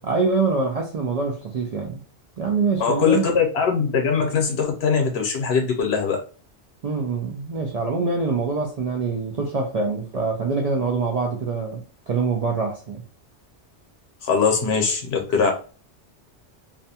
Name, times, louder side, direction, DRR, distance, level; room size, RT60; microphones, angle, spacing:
voice 1, 0.0-2.0 2.4-3.2 6.8-11.8 12.1-13.0, right 4 dB, 65° right, 0 dB, 0.4 m, -24 dB
voice 2, 2.8-6.2 14.2-15.5, left 6 dB, 65° left, 3 dB, 0.9 m, -21 dB
2.6 x 2.2 x 2.7 m, 0.38 s
omnidirectional pair, 1.2 m